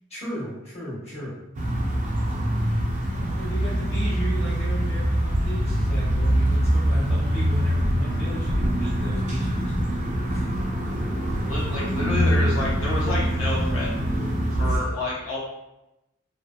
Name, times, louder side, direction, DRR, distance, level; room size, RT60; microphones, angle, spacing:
voice 1, 0.1-1.4 3.1-9.7 10.3-10.5 14.7-14.8, equal, 30° left, -9 dB, 1.0 m, -34 dB
sound 1, 1.5-14.8, equal, 35° right, 0.4 m, -24 dB
voice 2, 11.5-13.9 14.5-15.4, left 2 dB, 80° left, -6 dB, 0.7 m, -29 dB
2.6 x 2.2 x 2.3 m, 0.94 s
head